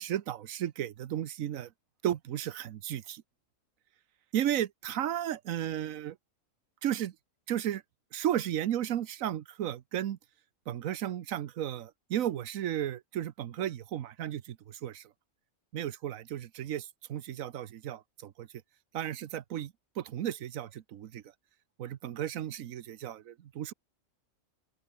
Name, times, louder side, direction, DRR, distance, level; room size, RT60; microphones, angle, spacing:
voice 1, 0.0-1.7 2.0-3.2 4.3-6.2 6.8-7.1 7.5-7.8 8.1-10.2 10.7-15.0 15.7-18.5 18.9-21.2 21.8-23.7, right 11 dB, 80° right, 1.2 m, -34 dB
open air
omnidirectional pair, 1.4 m